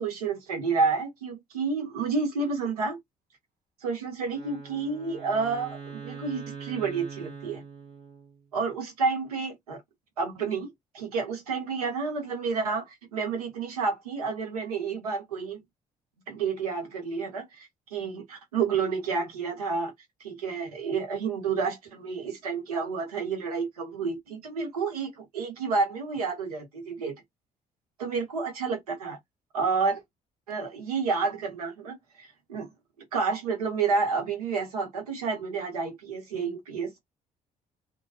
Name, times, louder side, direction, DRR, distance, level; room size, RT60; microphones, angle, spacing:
voice 1, 0.0-3.0 3.8-7.6 8.5-9.8 10.2-15.6 16.3-19.9 20.2-27.1 28.0-29.2 29.5-30.0 30.5-32.7 33.1-37.0, right 4 dB, 90° right, 0.8 m, -30 dB
Wind instrument woodwind instrument, 4.3-8.5, right 5 dB, 65° right, 1.5 m, -42 dB
2.9 x 2.2 x 2.7 m
hypercardioid pair, 45°, 19 cm